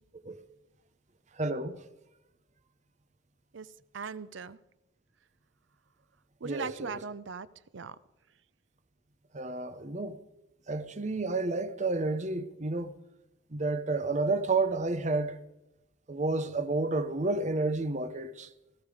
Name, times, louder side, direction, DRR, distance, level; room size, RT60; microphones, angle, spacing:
voice 1, 1.3-1.8 6.4-7.0 9.3-10.2 10.7-12.9 13.5-15.4 16.1-18.5, right 3 dB, 35° right, 0.8 m, -30 dB
voice 2, 3.5-4.6 6.4-7.5 7.7-8.0, right 5 dB, 70° right, 0.6 m, -39 dB
17.0 x 14.0 x 5.0 m
head